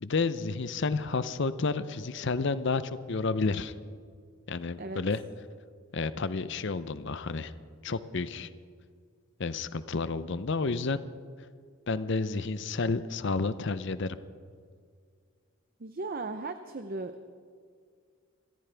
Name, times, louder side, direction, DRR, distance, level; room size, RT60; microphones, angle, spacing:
voice 1, 0.0-3.7 4.5-5.2 5.9-7.5 7.8-8.5 9.4-11.0 11.9-14.2, left 4 dB, 55° left, 14 dB, 0.6 m, -30 dB
voice 2, 15.8-17.1, right 3 dB, 45° right, 8 dB, 0.6 m, -36 dB
27.0 x 14.0 x 3.4 m, 2.1 s
head